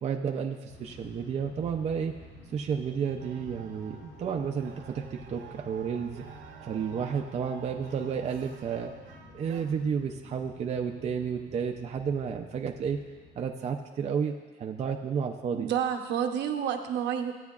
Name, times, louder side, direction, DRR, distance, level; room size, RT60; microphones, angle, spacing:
voice 1, 0.0-2.1 2.5-6.2 6.6-8.9 9.3-13.0 13.4-15.7, right 7 dB, 35° right, 2 dB, 0.5 m, -31 dB
sound 1, 0.7-13.5, left 2 dB, 75° left, 3.0 m, -51 dB
sound 2, 3.2-9.6, right 6 dB, 90° right, 1.5 m, -49 dB
voice 2, 15.5-17.3, right 8 dB, 65° right, 5 dB, 0.8 m, -29 dB
15.0 x 9.1 x 2.4 m, 1.4 s
cardioid pair, 155°, 19 cm